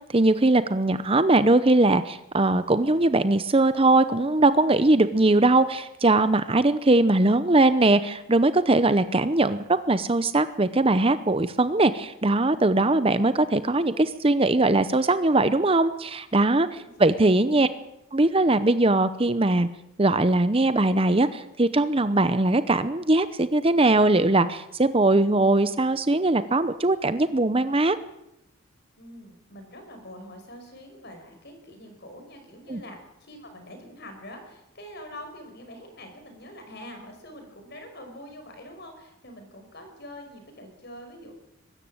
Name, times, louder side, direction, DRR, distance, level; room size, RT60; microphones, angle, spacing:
voice 1, 0.1-16.7 17.0-17.7 18.1-19.7 20.0-28.0 32.7-32.8, right 2 dB, 25° right, 13 dB, 0.7 m, -21 dB
voice 2, 16.8-17.6 29.0-41.3, equal, 50° left, 5 dB, 5.5 m, -44 dB
23.0 x 13.5 x 8.9 m, 0.84 s
head